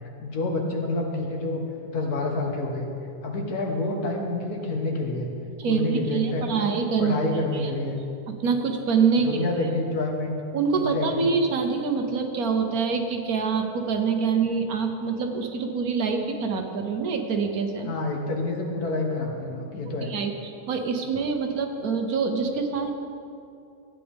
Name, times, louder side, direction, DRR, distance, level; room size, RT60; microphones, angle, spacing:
voice 1, 0.2-2.9 3.2-5.3 5.6-6.6 7.0-8.0 9.2-10.4 10.7-11.3 17.9-20.1, left 2 dB, 70° left, 1 dB, 1.7 m, -28 dB
voice 2, 5.6-7.1 7.5-7.7 8.4-9.4 10.5-17.9 20.0-22.9, right 5 dB, 65° right, 4 dB, 1.3 m, -25 dB
14.0 x 9.1 x 3.5 m, 2.5 s
omnidirectional pair, 1.7 m